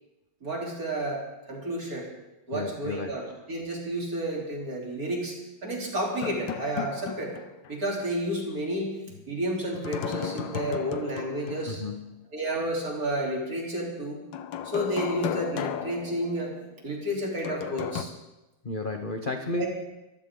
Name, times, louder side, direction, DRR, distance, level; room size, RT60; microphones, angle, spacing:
voice 1, 0.4-2.1 2.5-5.4 5.6-7.3 7.7-8.9 9.3-11.8 12.3-14.2 14.6-16.5 16.8-18.1 19.6-19.7, right 1 dB, 40° right, -2 dB, 4.1 m, -31 dB
voice 2, 2.5-3.1 11.7-12.2 18.6-19.6, left 2 dB, 45° left, 5 dB, 0.6 m, -32 dB
sound 1, 6.2-7.7 8.0-8.1 9.7-11.7 14.3-16.8 17.4-18.0, left 8 dB, 65° left, 1.5 m, -34 dB
23.5 x 15.0 x 3.8 m, 0.99 s
omnidirectional pair, 2.4 m